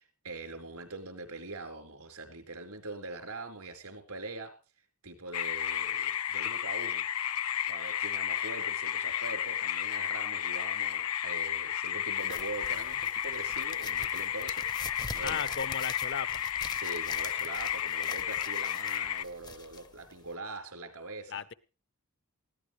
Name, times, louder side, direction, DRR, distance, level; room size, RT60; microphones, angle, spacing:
voice 1, 0.0-4.5 5.0-7.0 7.7-14.6 15.1-15.5 16.8-21.4, right 3 dB, 90° right, 5 dB, 4.4 m, -43 dB
sound 1, 5.3-19.2, left 10 dB, 85° left, 0.8 m, -33 dB
sound 2, 12.2-20.4, left 4 dB, 20° left, 0.6 m, -45 dB
voice 2, 15.2-16.4 21.3-21.5, left 6 dB, 55° left, 14 dB, 0.8 m, -36 dB
20.0 x 15.5 x 3.2 m, 0.35 s
head